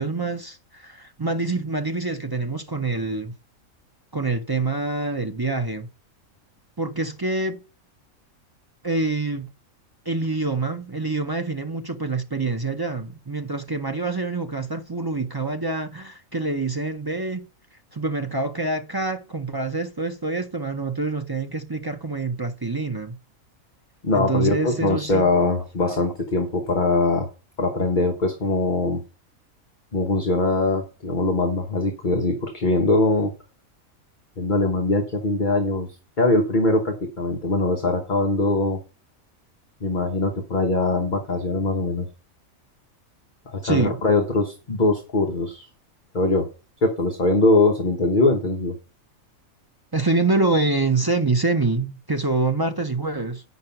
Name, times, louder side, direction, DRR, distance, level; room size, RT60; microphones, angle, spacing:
voice 1, 0.0-3.3 4.1-5.9 6.8-7.6 8.8-9.5 10.1-17.5 17.9-23.2 24.1-25.2 25.9-26.0 43.6-44.0 49.9-53.4, right 3 dB, 35° right, 0.4 m, -26 dB
voice 2, 24.0-27.3 27.6-29.0 29.9-33.3 34.4-35.9 36.2-38.8 39.8-42.1 43.5-45.7 46.1-46.5 46.8-48.7, left 2 dB, 35° left, 1.3 m, -22 dB
9.2 x 5.4 x 5.8 m
omnidirectional pair, 1.4 m